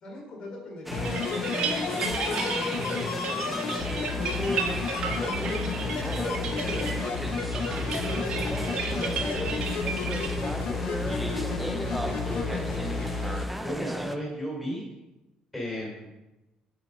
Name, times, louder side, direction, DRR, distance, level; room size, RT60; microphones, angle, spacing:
voice 1, 0.0-4.7 5.2-7.0 7.9-13.0, left 1 dB, 40° left, -2 dB, 3.9 m, -39 dB
sound 1, 0.9-13.4 13.7-13.8, left 5 dB, 80° left, 0.9 m, -32 dB
sound 2, 0.9-14.2, right 1 dB, 5° right, 0.5 m, -34 dB
sound 3, 1.0-10.5, right 6 dB, 55° right, 1.6 m, -35 dB
voice 2, 13.5-14.9 15.5-16.1, equal, 10° left, -4 dB, 4.2 m, -34 dB
13.0 x 5.1 x 5.4 m, 1.0 s
cardioid pair, 165°, 2 cm